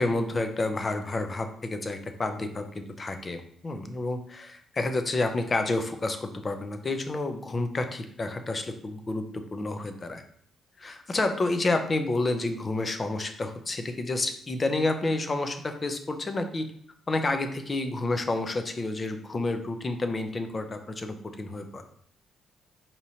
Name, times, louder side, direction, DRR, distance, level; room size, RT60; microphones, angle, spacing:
voice 1, 0.0-10.2 10.8-16.7 17.1-21.8, left 2 dB, 30° left, 7 dB, 0.5 m, -29 dB
4.8 x 2.8 x 2.7 m, 0.62 s
cardioid pair, 90°, 0 cm